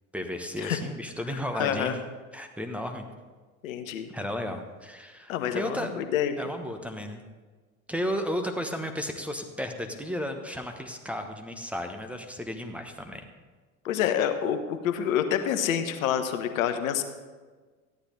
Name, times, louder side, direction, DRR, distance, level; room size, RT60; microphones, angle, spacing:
voice 1, 0.1-2.0 2.3-3.0 4.1-5.9 6.4-7.2 7.9-13.3, equal, 5° right, 5 dB, 1.1 m, -34 dB
voice 2, 1.3-1.9 3.6-4.1 5.3-6.3 13.8-17.0, left 9 dB, 70° left, 8 dB, 1.0 m, -27 dB
14.0 x 9.9 x 4.0 m, 1.4 s
figure-of-eight pair, 70°, 42 cm